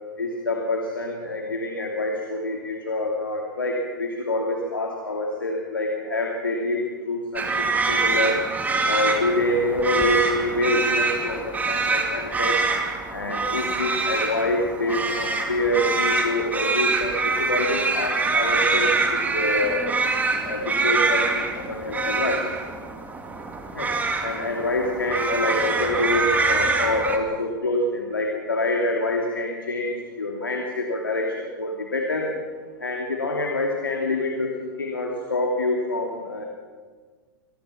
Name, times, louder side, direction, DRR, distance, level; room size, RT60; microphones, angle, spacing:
voice 1, 0.2-6.8 7.1-8.4 8.9-12.6 13.1-19.9 20.4-22.4 23.7-23.9 24.2-32.3 32.8-36.5, left 2 dB, 90° left, 1 dB, 2.8 m, -26 dB
sound 1, 7.4-27.2, right 3 dB, 15° right, 2.6 m, -25 dB
26.0 x 19.0 x 5.9 m, 1.5 s
hypercardioid pair, 105°, 11 cm